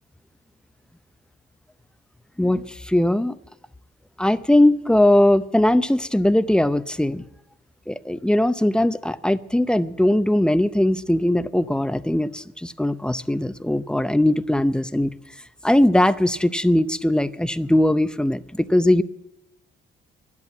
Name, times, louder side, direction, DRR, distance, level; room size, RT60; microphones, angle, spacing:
voice 1, 2.4-3.4 4.2-7.2 7.9-15.1 15.6-19.0, left 1 dB, 5° left, 12 dB, 0.6 m, -20 dB
12.0 x 11.0 x 8.6 m, 0.85 s
cardioid pair, 90°, 20 cm